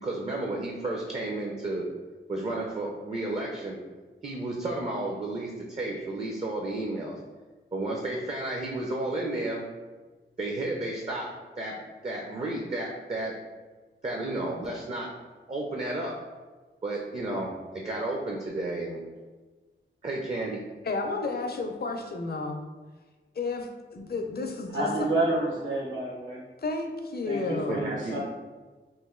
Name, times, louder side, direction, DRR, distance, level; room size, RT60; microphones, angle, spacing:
voice 1, 0.0-1.9 2.3-3.8 4.2-7.2 7.7-9.6 10.4-11.3 11.6-11.8 12.0-13.3 14.0-15.1 15.5-16.2 16.8-19.0 20.0-20.6 27.7-28.2, right 2 dB, 35° right, -1 dB, 0.5 m, -32 dB
voice 2, 20.8-22.6 23.4-25.1 26.6-27.9, left 3 dB, 50° left, 4 dB, 0.5 m, -32 dB
voice 3, 24.7-26.4 27.2-28.2, right 2 dB, 75° right, -4 dB, 1.2 m, -29 dB
3.1 x 2.5 x 3.6 m, 1.3 s
wide cardioid pair, 80°, 20 cm